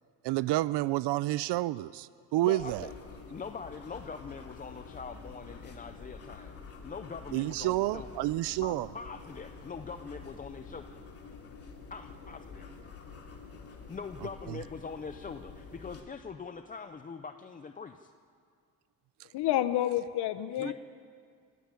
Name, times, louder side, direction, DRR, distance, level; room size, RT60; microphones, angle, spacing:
voice 1, 0.2-2.9 7.3-8.9 14.5-14.6, right 17 dB, 90° right, 18 dB, 0.5 m, -29 dB
voice 2, 2.4-2.9 3.3-6.5 6.8-8.1 8.6-11.0 11.9-12.7 13.9-18.1 20.6-20.7, left 5 dB, 20° left, 7 dB, 0.5 m, -42 dB
sound 1, 2.6-16.0, left 4 dB, 35° left, 2.6 m, -48 dB
voice 3, 19.3-20.7, left 13 dB, 80° left, 12 dB, 0.9 m, -29 dB
29.0 x 13.0 x 8.9 m, 2.2 s
cardioid pair, 180°, 40 cm